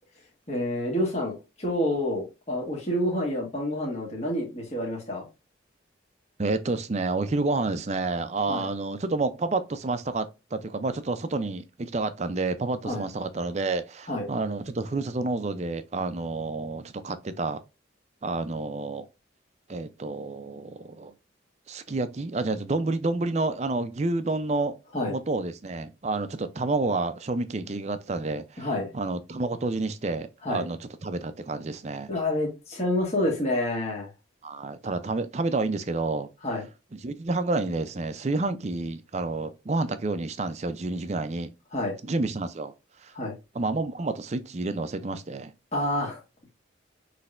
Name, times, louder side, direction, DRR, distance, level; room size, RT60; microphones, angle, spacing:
voice 1, 0.5-5.3 8.5-8.6 12.8-13.0 14.1-14.2 24.9-25.2 28.6-28.9 30.4-30.6 32.1-34.1 36.4-36.7 41.7-41.9 43.1-43.3 45.7-46.2, left 1 dB, 35° left, 1.5 m, -28 dB
voice 2, 6.4-17.6 18.2-19.1 19.7-21.1 21.7-24.8 25.1-28.7 28.9-32.1 34.4-36.3 36.9-41.5 42.0-42.7 43.0-43.1 43.5-45.5, right 3 dB, 35° right, 0.5 m, -29 dB
6.1 x 3.2 x 2.5 m
head